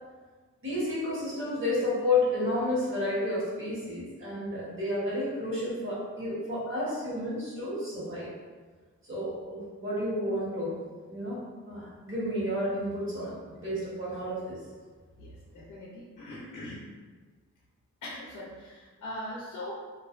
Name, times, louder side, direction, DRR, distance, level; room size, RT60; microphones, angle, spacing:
voice 1, 0.6-8.3 9.0-10.8 11.1-14.6, left 1 dB, 40° right, -8 dB, 1.1 m, -31 dB
voice 2, 15.2-16.9 18.0-19.7, left 1 dB, 80° left, -5 dB, 0.6 m, -41 dB
2.4 x 2.1 x 2.5 m, 1.4 s
cardioid pair, 70°, 30 cm